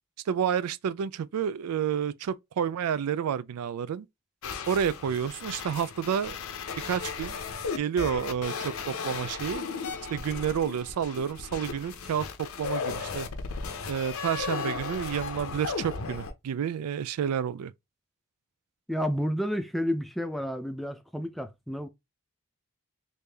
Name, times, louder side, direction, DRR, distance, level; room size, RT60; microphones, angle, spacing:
voice 1, 0.3-4.1 4.7-6.4 6.8-7.4 7.8-9.6 10.1-13.3 13.9-17.7, right 8 dB, 85° right, 0.3 m, -30 dB
sound 1, 4.4-16.3, left 5 dB, 70° left, 0.6 m, -36 dB
voice 2, 18.9-21.9, equal, ahead, 0.3 m, -30 dB
3.3 x 2.6 x 3.3 m
head